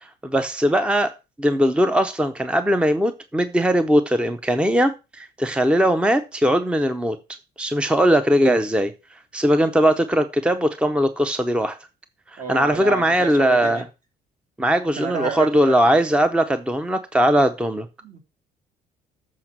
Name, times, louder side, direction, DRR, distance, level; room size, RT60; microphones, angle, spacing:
voice 1, 0.0-7.2 7.6-11.8 12.3-13.9 14.6-17.9, equal, 5° right, 0.6 m, -20 dB
voice 2, 12.4-13.8 15.0-15.8 18.0-18.2, right 5 dB, 50° right, 2.5 m, -30 dB
7.6 x 5.0 x 6.0 m
cardioid pair, 110°, 17 cm